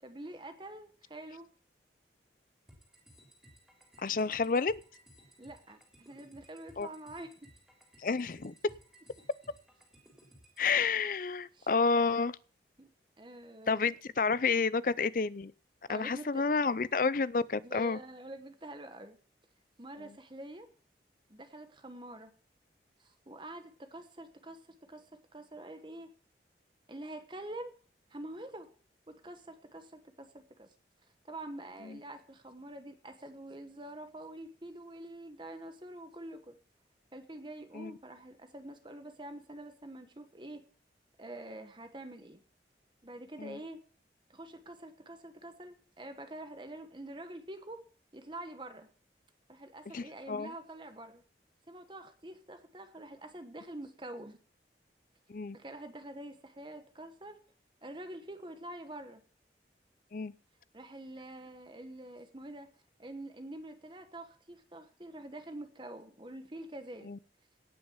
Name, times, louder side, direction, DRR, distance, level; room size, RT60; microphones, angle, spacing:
voice 1, 0.0-1.5 5.4-7.5 11.5-11.7 12.8-12.9 13.2-13.8 15.9-16.5 17.6-19.2 19.8-20.7 21.3-22.3 23.0-24.6 24.9-26.1 26.9-27.7 28.1-28.7 29.1-30.7 31.3-36.6 37.1-40.6 41.2-42.4 43.0-43.8 44.3-47.8 48.1-48.9 49.5-51.2 51.7-54.4 55.5-57.4 57.8-59.2 60.7-62.7 63.0-67.1, right 1 dB, 25° right, 1.1 m, -46 dB
sound 1, 2.7-10.7, equal, 5° right, 3.4 m, -60 dB
voice 2, 4.0-4.8 6.8-6.9 8.0-8.5 10.6-12.3 13.7-15.5 15.9-18.0 37.7-37.9 43.4-43.6 49.9-50.5 55.3-55.6 60.1-60.3 67.1-67.2, left 4 dB, 50° left, 0.5 m, -30 dB
17.5 x 6.4 x 7.2 m
head